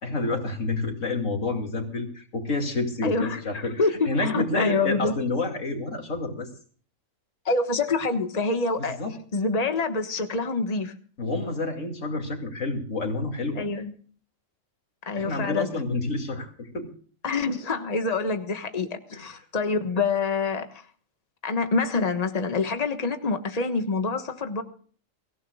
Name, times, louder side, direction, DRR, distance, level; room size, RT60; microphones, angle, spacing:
voice 1, 0.0-3.8 4.1-6.5 9.0-9.1 11.2-13.6 15.2-16.9 19.1-19.2, left 3 dB, 70° left, 4 dB, 2.9 m, -29 dB
voice 2, 3.0-3.9 4.2-5.1 7.4-9.0 9.3-10.9 13.5-13.9 15.1-15.7 17.2-20.9 21.4-24.6, left 3 dB, 30° left, 7 dB, 1.4 m, -26 dB
24.0 x 16.0 x 2.3 m, 0.44 s
omnidirectional pair, 1.4 m